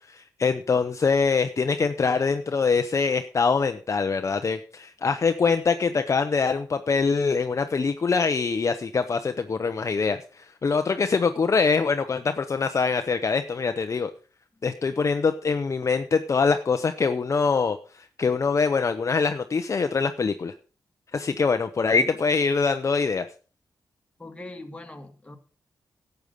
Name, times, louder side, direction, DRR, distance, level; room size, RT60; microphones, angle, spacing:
voice 1, 0.1-14.1 14.6-20.5 21.1-23.3, left 5 dB, 45° left, 8 dB, 0.7 m, -24 dB
voice 2, 24.2-25.4, left 2 dB, 15° left, 5 dB, 1.8 m, -41 dB
12.5 x 8.0 x 5.1 m, 0.37 s
cardioid pair, 95°, 7 cm